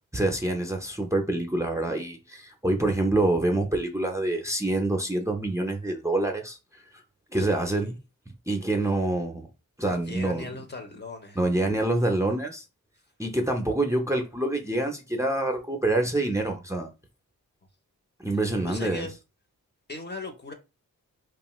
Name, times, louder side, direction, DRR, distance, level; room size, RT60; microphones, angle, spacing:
voice 1, 0.1-6.8 7.3-8.0 8.5-9.5 9.8-10.5 11.4-12.6 13.2-16.9 18.2-19.1, right 2 dB, 10° right, 0.6 m, -26 dB
voice 2, 7.4-7.9 9.9-11.4 18.6-19.2 19.9-20.5, left 3 dB, 30° left, 0.7 m, -39 dB
2.6 x 2.4 x 3.0 m
cardioid pair, 55°, 35 cm